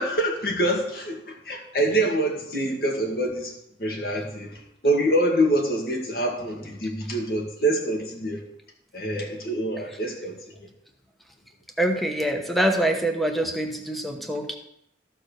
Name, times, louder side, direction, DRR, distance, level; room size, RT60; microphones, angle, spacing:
voice 1, 0.0-3.5 3.8-8.4 8.9-10.7, right 1 dB, 55° left, 0 dB, 2.0 m, -25 dB
voice 2, 11.8-14.6, right 1 dB, ahead, 3 dB, 1.0 m, -25 dB
14.0 x 4.7 x 6.6 m, 0.79 s
head